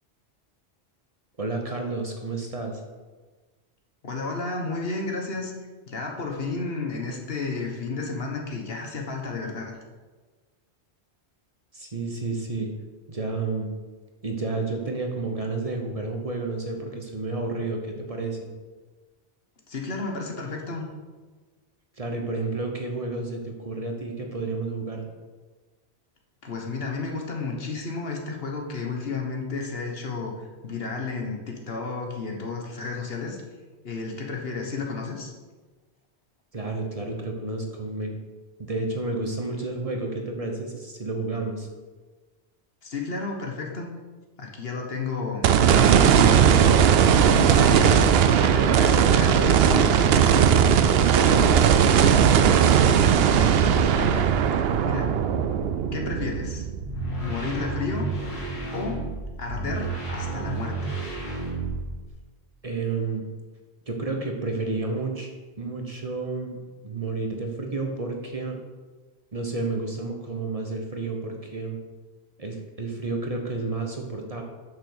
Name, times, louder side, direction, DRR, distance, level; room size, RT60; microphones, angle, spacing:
voice 1, 1.4-2.8 11.7-12.7 13.1-13.7 14.2-18.5 22.0-25.0 36.5-38.2 38.6-41.7 51.2-51.7 62.6-63.2 63.9-65.3 65.6-68.6 69.3-71.8 72.4-74.4, right 3 dB, 35° right, 2 dB, 1.1 m, -30 dB
voice 2, 4.0-5.5 5.9-9.7 19.7-20.9 26.4-33.4 33.8-35.3 42.8-43.9 44.4-46.7 47.0-48.0 48.4-50.4 53.2-54.3 54.8-55.1 55.9-56.7 57.2-58.1 58.7-59.0 59.4-60.9, left 4 dB, 65° left, 1 dB, 1.5 m, -32 dB
sound 1, 45.4-57.8 58.2-58.3 61.7-61.8, right 8 dB, 70° right, 0.8 m, -18 dB
sound 2, 56.7-62.1, right 3 dB, 85° left, 3.5 m, -31 dB
6.6 x 6.2 x 6.5 m, 1.3 s
omnidirectional pair, 1.1 m